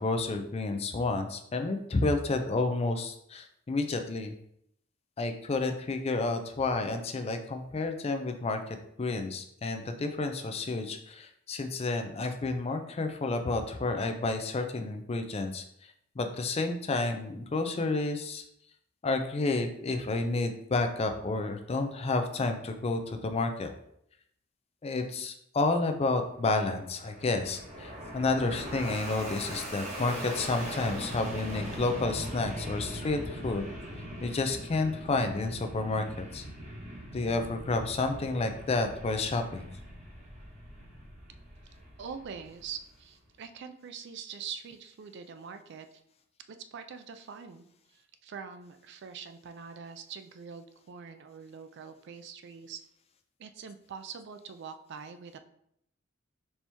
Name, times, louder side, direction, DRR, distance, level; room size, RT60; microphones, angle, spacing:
voice 1, 0.0-4.3 5.2-15.6 16.2-18.4 19.0-23.7 24.8-33.7 34.2-36.4 37.1-39.7, left 3 dB, 30° left, 6 dB, 0.4 m, -30 dB
Fixed-wing aircraft airplane, 26.4-43.0, equal, 35° right, 1.1 m, -41 dB
voice 2, 42.0-45.9 46.5-47.7 47.9-52.8 53.4-55.4, right 6 dB, 60° right, 9 dB, 0.4 m, -44 dB
4.3 x 2.9 x 3.4 m, 0.73 s
head